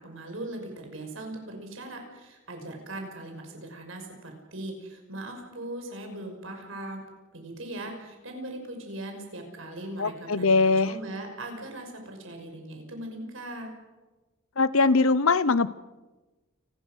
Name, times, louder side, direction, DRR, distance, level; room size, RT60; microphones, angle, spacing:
voice 1, 0.0-7.0 7.3-13.7, right 1 dB, 70° right, 4 dB, 5.9 m, -39 dB
voice 2, 10.0-10.9 14.6-15.7, left 3 dB, 80° left, 17 dB, 0.8 m, -21 dB
29.5 x 20.5 x 6.5 m, 1.2 s
head